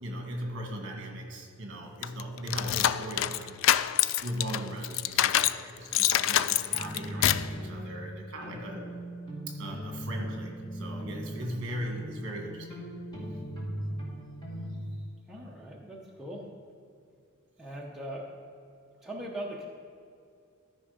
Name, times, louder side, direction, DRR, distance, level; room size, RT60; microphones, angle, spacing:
voice 1, 0.0-3.5 4.2-8.9 9.5-12.8, right 1 dB, 55° right, 1 dB, 1.8 m, -38 dB
sound 1, 2.0-5.6 5.9-7.5, left 11 dB, 65° left, 0.3 m, -26 dB
sound 2, 6.7-14.8, equal, 20° left, 2.2 m, -39 dB
voice 2, 15.3-16.5 17.6-18.3 19.0-19.7, right 1 dB, ahead, -3 dB, 0.8 m, -40 dB
13.5 x 5.2 x 5.1 m, 2.5 s
head